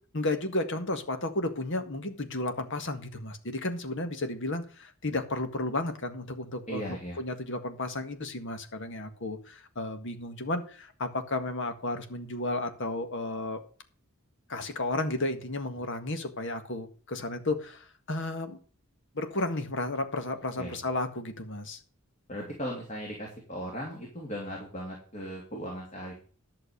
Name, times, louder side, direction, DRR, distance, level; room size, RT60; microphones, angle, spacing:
voice 1, 0.1-13.6 14.5-18.6 19.1-21.8, left 2 dB, 60° left, 8 dB, 1.8 m, -33 dB
voice 2, 6.7-7.2 20.6-20.8 22.3-26.1, equal, 35° left, -1 dB, 3.0 m, -37 dB
11.5 x 6.7 x 6.7 m, 0.42 s
head